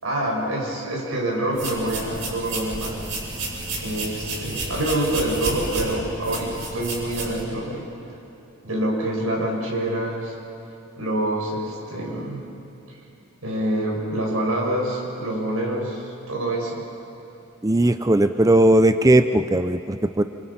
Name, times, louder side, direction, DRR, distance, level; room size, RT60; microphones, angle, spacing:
voice 1, 0.0-3.0 3.8-7.9 8.6-10.4 11.0-12.4 13.4-16.8, right 1 dB, 90° right, -2 dB, 7.0 m, -26 dB
sound 1, 1.5-7.4, right 2 dB, 70° right, 7.7 m, -31 dB
voice 2, 17.6-20.2, right 1 dB, 15° right, 9 dB, 0.5 m, -18 dB
29.0 x 28.0 x 5.9 m, 2.8 s
head